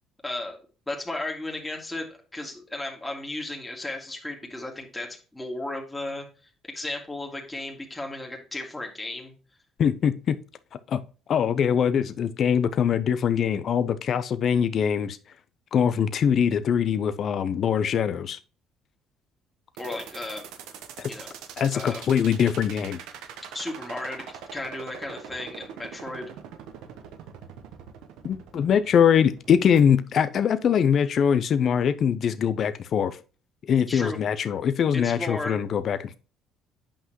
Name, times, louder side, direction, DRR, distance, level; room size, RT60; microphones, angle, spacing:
voice 1, 0.2-6.3 6.7-9.3 19.8-20.4 21.1-21.3 21.7-22.0 23.5-24.2 24.5-26.3 33.9-34.2 34.9-35.6, left 2 dB, 10° left, 2.2 m, -34 dB
voice 2, 9.8-10.4 10.9-11.0 11.3-15.2 15.7-18.4 21.0-21.1 21.6-23.0 28.2-33.2 33.7-36.2, left 8 dB, 55° left, 0.6 m, -23 dB
sound 1, 19.8-29.8, right 8 dB, 80° right, 1.0 m, -42 dB
8.6 x 5.7 x 3.0 m
supercardioid pair, 70°, 0 cm